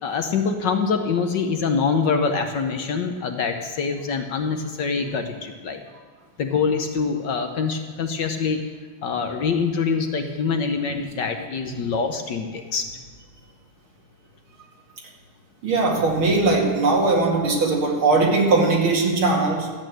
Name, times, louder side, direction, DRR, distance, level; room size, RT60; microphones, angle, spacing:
voice 1, 0.0-5.8 6.4-8.6 9.0-12.9, left 5 dB, 60° left, 5 dB, 1.4 m, -24 dB
voice 2, 15.6-19.7, right 3 dB, 70° right, -1 dB, 3.1 m, -20 dB
13.5 x 8.8 x 7.7 m, 1.5 s
omnidirectional pair, 2.4 m